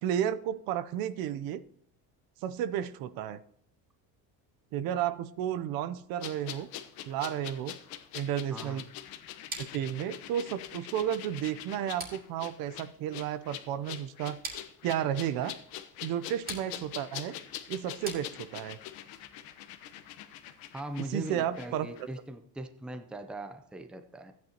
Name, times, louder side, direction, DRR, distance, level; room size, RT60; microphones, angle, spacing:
voice 1, 0.0-1.6 2.4-3.4 4.7-6.7 7.1-7.8 8.1-8.8 9.7-14.4 14.8-15.6 16.0-17.4 17.7-18.8 21.1-21.9, right 10 dB, 65° right, 13 dB, 0.7 m, -32 dB
sound 1, 6.2-21.7 21.9-22.1, left 11 dB, 65° left, 1.1 m, -44 dB
voice 2, 8.5-8.8 20.7-24.3, right 1 dB, ahead, 8 dB, 0.5 m, -40 dB
sound 2, 9.5-18.8, right 3 dB, 25° right, 2.4 m, -47 dB
14.0 x 9.4 x 2.9 m, 0.69 s
cardioid pair, 155°, 38 cm